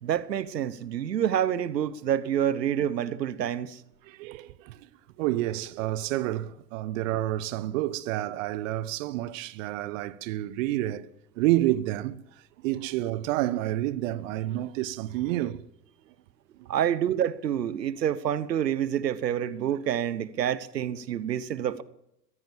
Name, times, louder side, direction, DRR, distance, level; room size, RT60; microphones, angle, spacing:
voice 1, 0.0-3.8 16.7-21.8, right 10 dB, 75° right, 1.2 m, -27 dB
voice 2, 4.0-4.9 5.2-11.1 11.4-12.2 12.6-15.6 21.7-21.8, right 15 dB, 50° right, 1.2 m, -29 dB
22.5 x 16.0 x 7.3 m
figure-of-eight pair, 90°, 50 cm